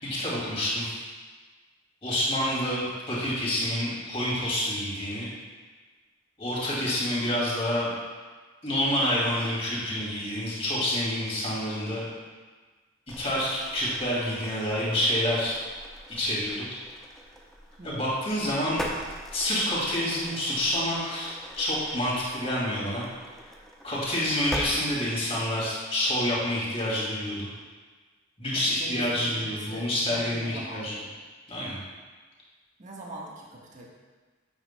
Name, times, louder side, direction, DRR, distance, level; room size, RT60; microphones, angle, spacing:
voice 1, 0.0-1.0 2.0-5.3 6.4-7.9 8.6-12.0 13.2-15.6 16.1-16.7 17.8-18.9 19.3-23.0 23.8-27.5 28.4-30.9 31.5-31.8, left 1 dB, 30° left, -6 dB, 2.4 m, -28 dB
sound 1, 13.1-24.7, equal, ahead, 0.7 m, -42 dB
voice 2, 17.8-18.1 28.5-30.9 32.8-33.9, right 1 dB, 40° right, -3 dB, 1.3 m, -42 dB
9.8 x 7.9 x 2.2 m, 1.4 s
head